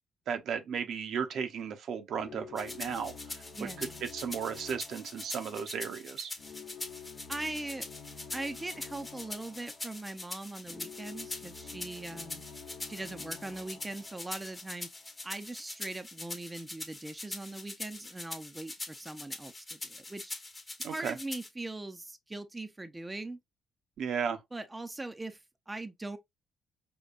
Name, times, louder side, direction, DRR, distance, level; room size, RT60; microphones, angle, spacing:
voice 1, 0.3-6.3 20.8-21.2 24.0-24.4, right 7 dB, 70° right, 0.7 m, -35 dB
sound 1, 2.1-15.2, left 7 dB, 70° left, 0.8 m, -50 dB
sound 2, 2.6-21.5, left 2 dB, 20° left, 0.9 m, -43 dB
voice 2, 3.5-4.0 7.3-7.9 8.3-12.4 12.8-14.9 15.2-20.3 20.9-23.4 24.5-26.2, right 2 dB, 15° right, 0.5 m, -41 dB
5.2 x 2.2 x 2.5 m
cardioid pair, 90°, 0 cm